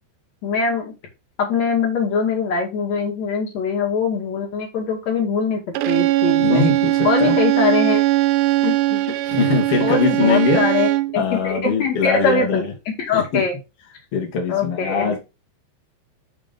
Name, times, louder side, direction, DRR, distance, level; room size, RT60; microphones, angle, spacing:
voice 1, 0.4-0.9 1.4-5.6 5.9-6.6 7.0-8.0 8.6-9.0 9.8-12.6 13.1-13.6 14.5-15.2, left 5 dB, 45° left, 0 dB, 2.5 m, -22 dB
Bowed string instrument, 5.8-11.2, right 18 dB, 85° right, 2.4 m, -19 dB
voice 2, 6.4-7.4 9.3-10.7 11.1-12.7 13.1-13.4 14.1-15.2, left 4 dB, 70° left, 0 dB, 1.3 m, -21 dB
7.2 x 3.8 x 5.1 m, 0.26 s
omnidirectional pair, 5.5 m